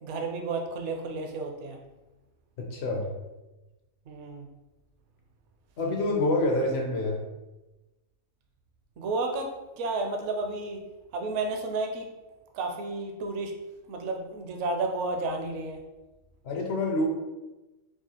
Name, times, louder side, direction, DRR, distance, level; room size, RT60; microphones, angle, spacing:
voice 1, 0.0-1.8 4.1-4.5 9.0-10.8 11.1-12.1 12.5-13.5 13.9-15.8, right 3 dB, 65° right, 3 dB, 0.8 m, -32 dB
voice 2, 2.6-3.1 5.8-7.2 16.4-17.1, left 2 dB, 60° left, 0 dB, 0.7 m, -27 dB
4.7 x 2.3 x 2.9 m, 1.1 s
omnidirectional pair, 1.6 m